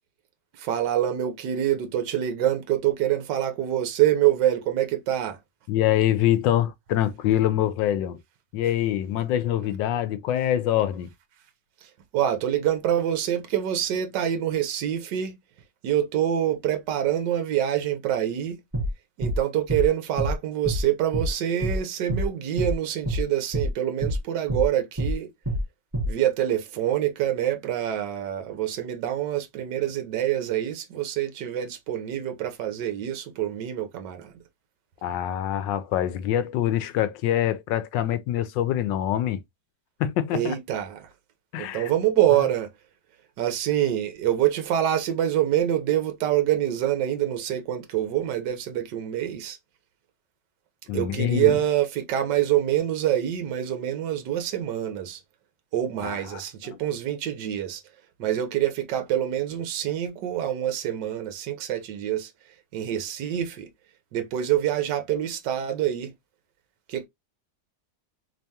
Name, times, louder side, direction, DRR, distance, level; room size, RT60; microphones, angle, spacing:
voice 1, 0.5-5.4 12.1-15.4 15.8-18.6 19.2-25.3 26.1-34.3 40.3-41.1 41.6-42.7 43.4-49.6 50.9-55.2 55.7-57.8 58.2-62.3 62.7-63.7 64.1-66.1 66.9-67.1, right 11 dB, 75° right, 1.4 m, -26 dB
voice 2, 5.7-8.2 8.5-11.1 35.0-39.4 40.0-40.5 41.5-41.9 50.9-51.5 56.0-56.4, left 12 dB, 80° left, 1.3 m, -25 dB
sound 1, 18.7-18.9 19.2-19.4 19.7-19.9 20.2-20.3 20.6-20.8 21.1-21.3 21.6-21.8 22.1-22.3 22.6-22.7 23.1-23.2 23.5-23.7 24.0-24.2 24.5-24.7 25.0-25.1 25.5-25.6 25.9-26.1, equal, 15° right, 1.5 m, -26 dB
3.4 x 3.4 x 2.7 m
omnidirectional pair, 2.0 m